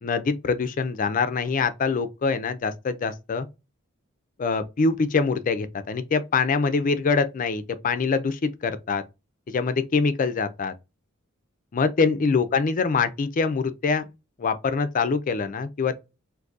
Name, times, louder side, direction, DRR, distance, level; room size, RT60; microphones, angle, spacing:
voice 1, 0.0-3.5 4.4-9.0 9.5-10.7 11.7-14.0 14.4-16.0, left 4 dB, 40° left, 0.4 m, -24 dB
3.8 x 2.6 x 2.4 m
head